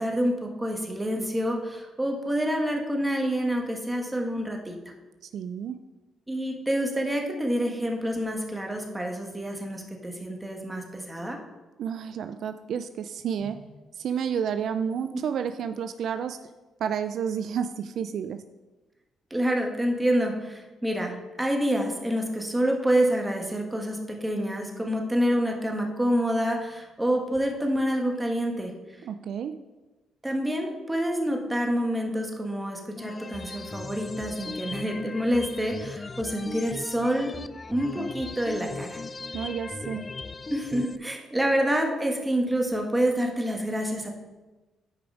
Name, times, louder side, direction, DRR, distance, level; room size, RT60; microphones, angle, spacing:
voice 1, 0.0-4.8 6.3-11.4 13.4-13.5 19.3-28.7 30.2-37.3 37.7-39.0 40.5-44.1, equal, 10° right, 2 dB, 1.5 m, -27 dB
voice 2, 5.2-5.8 11.8-13.6 14.0-16.4 16.8-18.4 29.0-29.5 39.3-40.1, right 7 dB, 70° right, 9 dB, 0.4 m, -30 dB
sound 1, 33.0-41.0, left 3 dB, 30° left, 0.4 m, -38 dB
9.6 x 5.1 x 4.8 m, 1.2 s
cardioid pair, 90°, 0 cm